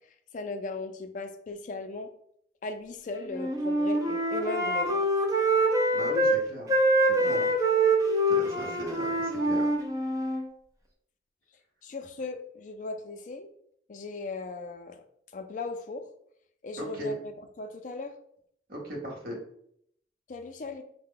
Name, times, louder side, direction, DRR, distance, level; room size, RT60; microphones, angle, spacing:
voice 1, 0.3-2.1 2.6-5.1 7.2-7.5 11.8-13.5 13.9-15.0 15.3-16.0 16.6-17.3 17.6-18.1 20.3-20.8, left 3 dB, 45° left, 7 dB, 0.4 m, -37 dB
Wind instrument woodwind instrument, 3.3-6.4 6.7-10.4, right 1 dB, 20° right, 0.5 m, -25 dB
voice 2, 5.9-6.7 7.0-7.4 8.3-9.7 16.8-17.1 18.7-19.4, equal, 50° right, -2 dB, 1.1 m, -38 dB
4.6 x 2.1 x 3.7 m, 0.69 s
head